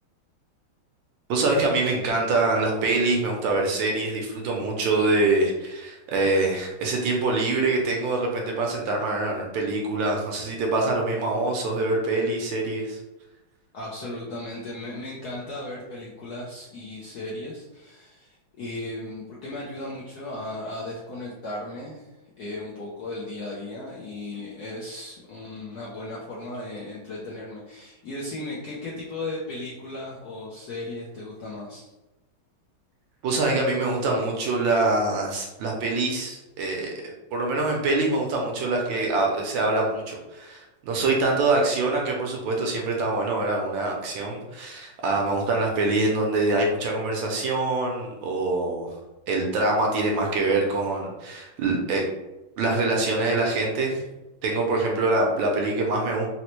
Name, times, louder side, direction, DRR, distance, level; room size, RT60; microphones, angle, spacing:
voice 1, 1.3-13.0 33.2-36.9 37.3-48.9 49.3-52.0 52.6-54.0 54.4-56.3, right 2 dB, 75° right, 0 dB, 1.3 m, -24 dB
voice 2, 13.7-31.9, left 2 dB, 75° left, -5 dB, 0.9 m, -36 dB
4.0 x 2.1 x 2.9 m, 1.0 s
omnidirectional pair, 2.3 m